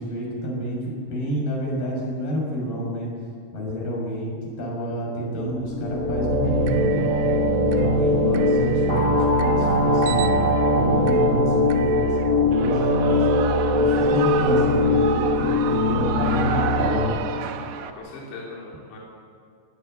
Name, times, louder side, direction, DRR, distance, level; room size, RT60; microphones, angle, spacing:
voice 1, 0.0-3.1 3.5-7.1 7.6-10.3 10.7-13.3 13.7-17.0, equal, 55° left, -2 dB, 8.0 m, -29 dB
sound 1, 5.5-17.1, left 2 dB, 20° right, 3.0 m, -21 dB
sound 2, 6.4-13.0, right 15 dB, 85° right, 2.1 m, -30 dB
Shout / Cheering, 12.5-17.9, right 8 dB, 65° right, 2.4 m, -30 dB
voice 2, 17.7-19.0, left 3 dB, 90° left, -4 dB, 5.5 m, -40 dB
21.5 x 20.5 x 8.0 m, 2.3 s
omnidirectional pair, 4.9 m